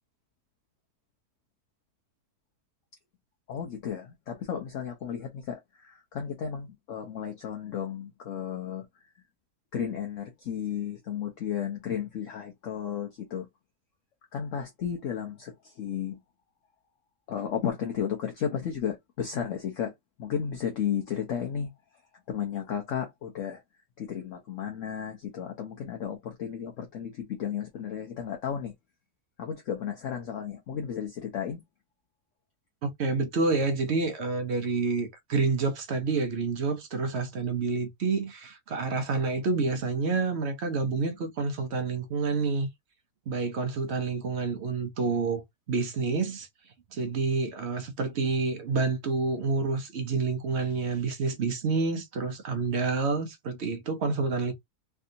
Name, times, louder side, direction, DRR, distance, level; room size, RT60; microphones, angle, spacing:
voice 1, 3.5-8.9 9.7-13.5 14.3-16.2 17.3-19.9 20.2-21.7 22.3-23.6 24.0-28.7 29.4-31.6, left 8 dB, 60° left, 1.0 m, -33 dB
voice 2, 32.8-42.7 43.3-45.4 45.7-46.5 46.9-54.5, right 4 dB, 55° right, 0.8 m, -28 dB
3.4 x 2.6 x 2.7 m
omnidirectional pair, 1.6 m